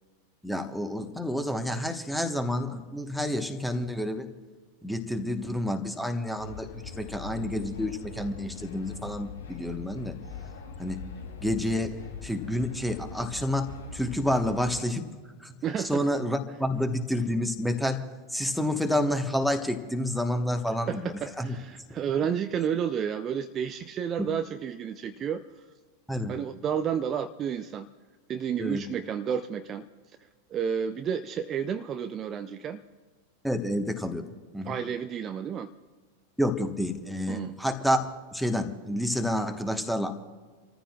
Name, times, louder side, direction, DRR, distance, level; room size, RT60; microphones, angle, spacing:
voice 1, 0.4-4.3 4.8-10.2 10.8-11.0 11.4-15.0 15.4-21.6 26.1-26.3 28.6-28.8 33.4-34.3 34.5-34.8 36.4-40.1, left 1 dB, ahead, 7 dB, 1.3 m, -29 dB
sound 1, 6.4-14.8, left 5 dB, 65° left, 1.5 m, -41 dB
voice 2, 15.6-16.0 20.9-25.6 26.3-27.9 28.3-29.8 30.5-32.8 34.6-35.7 37.3-37.5, right 8 dB, 30° right, 9 dB, 0.5 m, -31 dB
29.0 x 14.5 x 2.4 m, 1.4 s
figure-of-eight pair, 90°, 0 cm